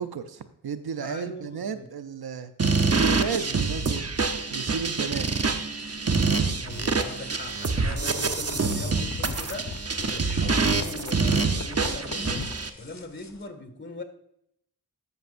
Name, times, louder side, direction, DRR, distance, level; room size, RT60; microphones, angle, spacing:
voice 1, 0.0-2.5 2.9-5.3, right 6 dB, 80° right, 11 dB, 0.7 m, -33 dB
voice 2, 1.0-1.9 6.6-9.7 10.0-12.5 12.8-14.0, left 2 dB, 30° left, 6 dB, 1.8 m, -40 dB
sound 1, 2.6-12.7, right 4 dB, 40° right, 0.9 m, -26 dB
sound 2, 5.8-13.4, left 4 dB, 45° left, 1.0 m, -40 dB
14.0 x 6.5 x 2.6 m, 0.77 s
cardioid pair, 40°, 37 cm